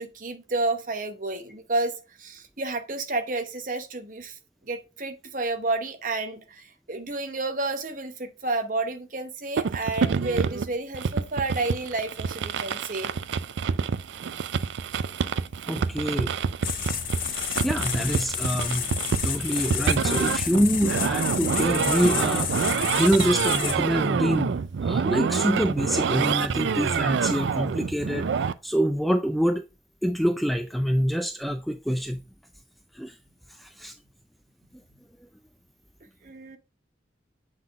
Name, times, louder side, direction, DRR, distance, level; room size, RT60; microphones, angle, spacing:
voice 1, 0.0-13.1 36.2-36.6, right 2 dB, 45° right, 0.9 m, -30 dB
sound 1, 9.6-28.5, right 6 dB, 80° right, 0.4 m, -27 dB
voice 2, 15.7-16.3 17.6-18.9 19.2-24.6 24.8-28.3 28.6-29.6 30.0-32.2 32.9-33.1 33.6-33.9, equal, ahead, 0.3 m, -26 dB
sound 2, 16.6-23.8, left 8 dB, 50° left, 0.8 m, -30 dB
7.6 x 3.9 x 3.5 m
head